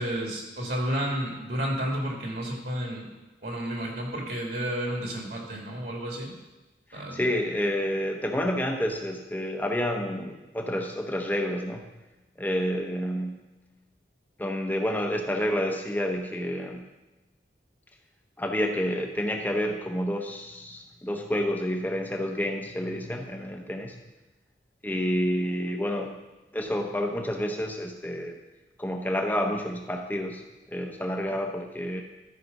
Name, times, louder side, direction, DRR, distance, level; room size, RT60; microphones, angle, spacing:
voice 1, 0.0-3.1 3.4-6.3 6.9-7.4, equal, 60° right, 0 dB, 1.9 m, -31 dB
voice 2, 6.9-11.8 12.4-13.4 14.4-16.8 18.4-23.9 24.8-26.2 26.5-28.4 28.8-30.4 30.7-32.0, equal, 10° left, 3 dB, 0.9 m, -29 dB
13.0 x 5.0 x 5.3 m, 1.1 s
head